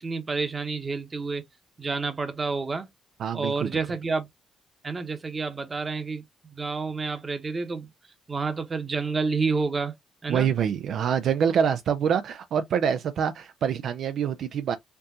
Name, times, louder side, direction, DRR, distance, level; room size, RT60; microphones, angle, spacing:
voice 1, 0.0-1.4 1.8-2.9 3.3-4.3 4.8-6.2 6.5-7.9 8.3-9.9 10.2-10.5, right 4 dB, 30° right, 1.0 m, -29 dB
voice 2, 3.2-3.7 10.3-14.8, right 7 dB, 70° right, 0.4 m, -25 dB
4.5 x 2.4 x 2.8 m
cardioid pair, 90°, 0 cm